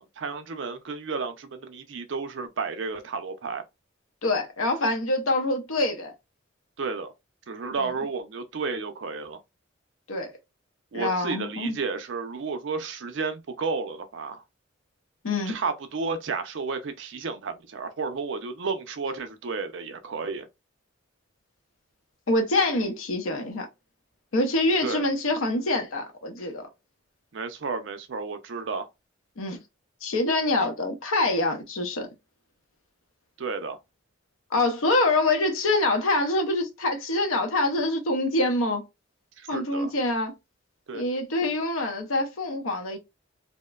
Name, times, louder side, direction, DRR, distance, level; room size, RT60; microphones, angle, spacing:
voice 1, 0.0-3.6 6.8-7.1 7.5-9.4 10.9-14.4 15.5-20.5 24.8-25.1 27.3-28.9 33.4-33.8 39.4-39.9 40.9-41.0, right 4 dB, 65° right, 0.4 m, -32 dB
voice 2, 4.2-6.1 7.8-7.9 10.1-10.3 10.9-11.8 15.2-15.6 22.3-23.7 24.3-26.7 29.4-29.6 30.0-32.1 34.5-38.8 39.5-40.3 40.9-43.0, left 2 dB, 80° left, 0.7 m, -25 dB
2.8 x 2.1 x 2.3 m
head